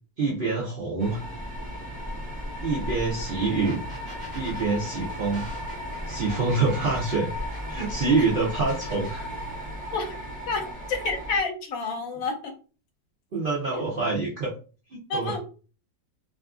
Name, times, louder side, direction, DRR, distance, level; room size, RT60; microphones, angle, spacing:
voice 1, 0.2-1.2 2.6-3.8 4.3-5.5 6.1-7.3 7.7-9.3 13.3-14.5 14.9-15.4, right 3 dB, 70° right, -4 dB, 0.5 m, -26 dB
sound 1, 1.0-11.4, left 1 dB, 10° right, 0.5 m, -35 dB
sound 2, 3.3-3.4 3.6-8.2 8.7-9.2, right 1 dB, 35° right, 0.9 m, -44 dB
voice 2, 10.9-12.3 13.7-13.8 15.1-15.4, left 3 dB, 70° left, 4 dB, 1.0 m, -28 dB
2.6 x 2.4 x 2.3 m, 0.37 s
omnidirectional pair, 1.6 m